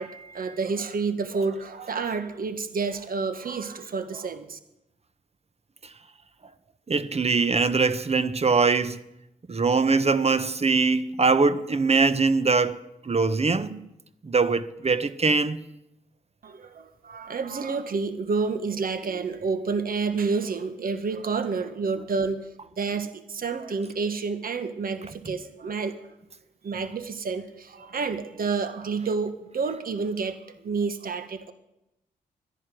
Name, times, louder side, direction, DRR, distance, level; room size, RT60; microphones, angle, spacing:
voice 1, 0.0-4.6 16.4-22.5 22.8-26.0 26.6-31.5, right 4 dB, 55° right, 1.6 m, -29 dB
voice 2, 6.9-9.0 9.5-12.8 13.0-13.8 14.2-15.6, right 4 dB, 35° right, 1.3 m, -22 dB
12.5 x 11.0 x 9.3 m
hypercardioid pair, 40°, 17 cm